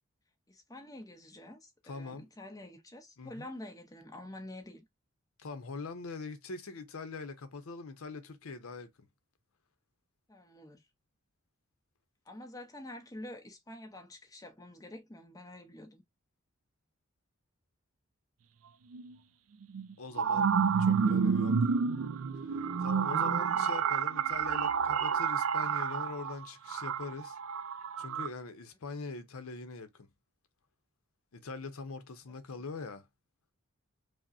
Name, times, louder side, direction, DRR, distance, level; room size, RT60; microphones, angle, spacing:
voice 1, 0.5-4.8 10.3-10.8 12.3-16.0 32.3-32.4, left 1 dB, 15° left, 0.7 m, -47 dB
voice 2, 1.8-2.3 3.2-3.5 5.4-8.9 20.0-21.7 22.3-27.4 28.0-30.1 31.3-33.1, left 4 dB, 75° left, 0.7 m, -43 dB
sound 1, 18.9-19.0 19.7-28.3, right 6 dB, 70° right, 0.4 m, -29 dB
5.0 x 2.1 x 2.5 m
head